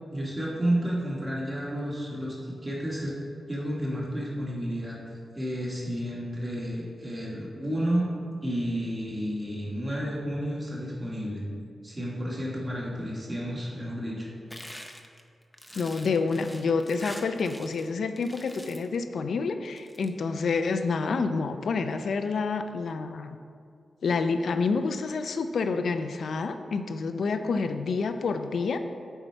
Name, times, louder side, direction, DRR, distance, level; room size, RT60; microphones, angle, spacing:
voice 1, 0.1-3.2 3.5-5.0 5.3-8.1 8.4-11.4 11.8-14.3, equal, 20° right, -4 dB, 1.6 m, -31 dB
sound 1, 14.5-17.9 18.2-18.9 19.6-20.1, equal, 5° left, 0.5 m, -45 dB
voice 2, 15.8-23.4 24.0-28.8, left 4 dB, 70° left, 8 dB, 0.4 m, -28 dB
7.9 x 4.7 x 4.4 m, 2.3 s
wide cardioid pair, 155°, 0 cm